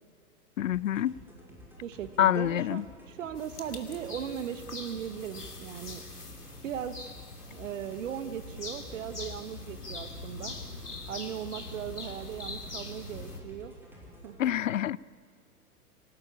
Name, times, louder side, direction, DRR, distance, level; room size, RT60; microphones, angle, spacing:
voice 1, 0.6-1.1 2.2-2.8 14.4-15.0, left 11 dB, 60° left, 23 dB, 0.6 m, -26 dB
sound 1, 0.6-14.4, equal, 5° right, 5.5 m, -52 dB
voice 2, 1.8-6.0 6.6-7.0 7.5-10.6 11.1-13.7 14.2-14.5, right 9 dB, 55° right, 12 dB, 1.6 m, -38 dB
sound 2, 3.3-13.4, left 3 dB, 80° left, 2.9 m, -43 dB
26.0 x 18.0 x 8.6 m, 2.2 s
figure-of-eight pair, 105°, 46 cm